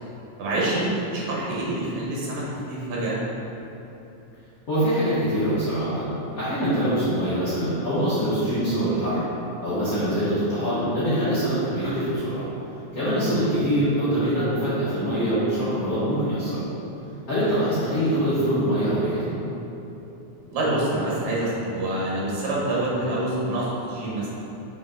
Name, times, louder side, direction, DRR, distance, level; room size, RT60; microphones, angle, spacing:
voice 1, 0.4-3.2 13.2-13.4 17.4-17.5 20.5-24.4, right 1 dB, 80° right, -6 dB, 2.6 m, -26 dB
voice 2, 4.7-9.2 9.6-12.4 12.9-16.7 17.3-19.4, equal, 40° left, -14 dB, 1.5 m, -24 dB
6.4 x 4.2 x 3.7 m, 3.0 s
omnidirectional pair, 3.4 m